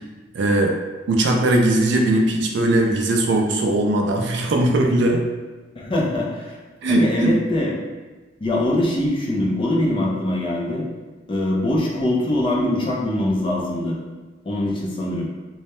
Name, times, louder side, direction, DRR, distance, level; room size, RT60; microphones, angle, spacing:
voice 1, 0.3-0.8 1.1-5.3 6.8-7.3, right 1 dB, 65° right, 2 dB, 0.3 m, -19 dB
voice 2, 5.8-6.6 6.9-7.8 8.4-10.9 11.3-14.0 14.5-15.3, left 1 dB, 30° left, -3 dB, 0.4 m, -22 dB
2.2 x 2.0 x 2.9 m, 1.3 s
head